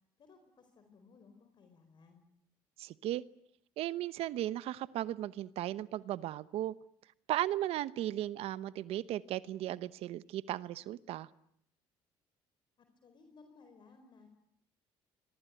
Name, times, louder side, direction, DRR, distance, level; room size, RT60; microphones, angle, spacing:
voice 1, 0.2-2.2 12.8-14.3, left 4 dB, 50° left, 7 dB, 4.4 m, -60 dB
voice 2, 2.8-3.2 3.8-6.7 7.3-11.3, right 13 dB, 70° right, 16 dB, 1.0 m, -36 dB
26.0 x 23.5 x 9.2 m, 0.74 s
cardioid pair, 95°, 10 cm